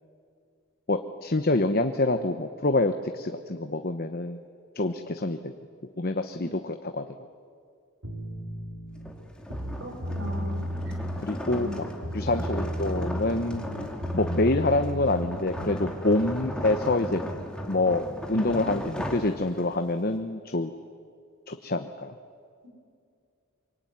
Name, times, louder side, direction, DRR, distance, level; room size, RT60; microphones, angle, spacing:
voice 1, 0.9-4.4 4.7-5.5 6.0-7.1 11.2-11.9 12.1-13.6 14.1-17.2 17.7-20.7 21.5-22.1, left 2 dB, 40° left, 7 dB, 1.0 m, -26 dB
sound 1, 8.0-9.1 9.4-11.2 11.5-13.3 13.5-15.9, equal, 85° right, 4.8 m, -34 dB
sound 2, 9.0-19.9, equal, 5° left, 2.3 m, -36 dB
voice 2, 9.8-10.6 11.5-11.8 12.3-12.5, left 1 dB, 55° right, 2 dB, 6.2 m, -38 dB
25.5 x 24.0 x 9.5 m, 2.3 s
head